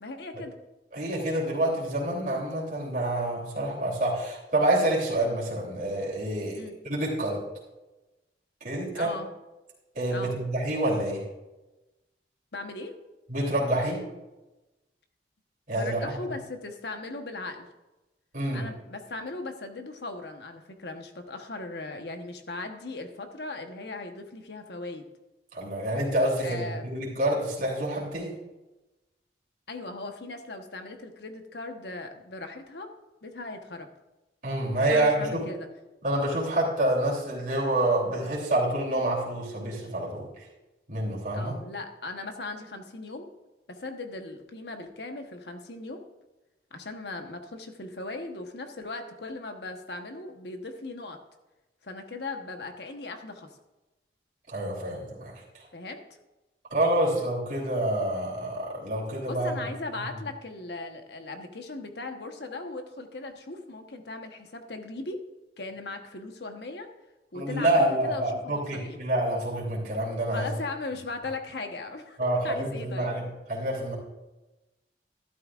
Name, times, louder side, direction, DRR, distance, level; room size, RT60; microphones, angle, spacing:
voice 1, 0.0-0.5 6.5-6.8 8.9-9.3 10.1-10.4 12.5-13.0 15.7-17.7 18.5-25.1 26.4-26.9 29.7-32.9 33.2-33.9 34.9-35.7 41.3-43.3 43.7-46.1 46.7-51.2 51.8-53.5 55.7-56.0 59.3-65.2 65.6-66.9 67.3-69.0 70.3-73.1, left 2 dB, 70° left, 5 dB, 1.1 m, -38 dB
voice 2, 0.9-7.4 8.6-9.1 9.9-11.2 13.3-14.0 15.7-16.0 18.3-18.7 25.5-28.3 34.4-35.4 36.0-40.5 40.9-41.6 54.5-55.7 56.7-59.5 67.3-70.5 72.2-73.9, right 1 dB, 50° right, -4 dB, 3.3 m, -27 dB
12.5 x 12.0 x 2.5 m, 1.0 s
head